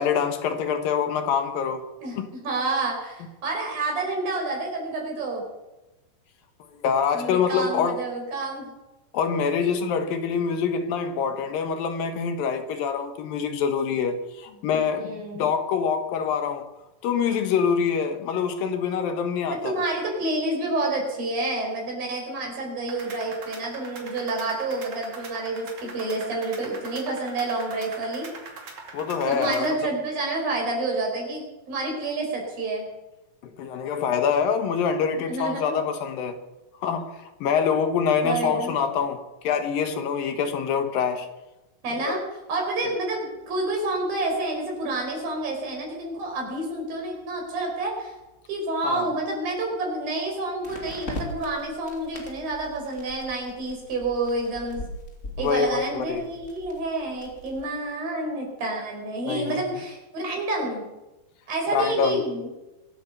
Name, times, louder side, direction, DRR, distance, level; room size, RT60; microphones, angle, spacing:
voice 1, 0.0-1.8 2.1-2.3 6.7-7.9 9.1-16.7 17.0-19.7 28.9-29.6 33.6-36.4 36.8-41.3 42.0-42.2 48.8-49.1 55.4-55.8 56.1-56.2 59.3-59.6 61.7-62.2, left 6 dB, 75° left, 3.0 m, -25 dB
voice 2, 2.0-5.4 7.1-8.7 9.6-9.7 14.7-15.5 19.6-28.3 29.3-32.9 35.2-35.7 38.2-38.7 41.8-42.2 42.5-48.1 48.5-54.9 55.4-60.8 61.5-62.5, right 2 dB, 75° right, 6.6 m, -29 dB
sound 1, 22.9-29.7, right 4 dB, 55° right, 3.6 m, -42 dB
sound 2, 43.9-44.0 50.6-57.7, equal, 25° left, 2.5 m, -40 dB
23.5 x 8.7 x 6.9 m
omnidirectional pair, 4.2 m